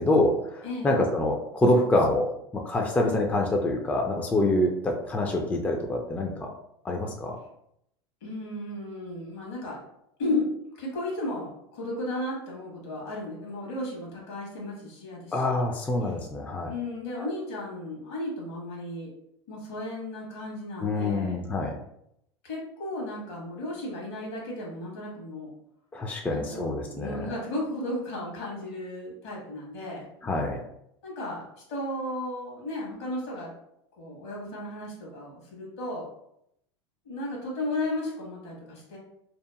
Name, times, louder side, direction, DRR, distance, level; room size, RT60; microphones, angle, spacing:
voice 1, 0.0-6.5 6.8-7.4 15.3-16.7 17.2-17.3 20.8-21.7 25.9-27.3 30.2-30.6, left 1 dB, 10° left, 2 dB, 0.3 m, -26 dB
voice 2, 0.6-1.0 8.2-9.8 10.2-10.5 10.8-15.6 16.0-16.1 16.7-19.1 19.5-21.4 22.4-25.5 26.3-30.1 31.0-33.5 34.0-36.1 37.0-39.0, left 1 dB, 70° left, -2 dB, 1.3 m, -34 dB
2.8 x 2.4 x 2.3 m, 0.77 s
hypercardioid pair, 95°, 14 cm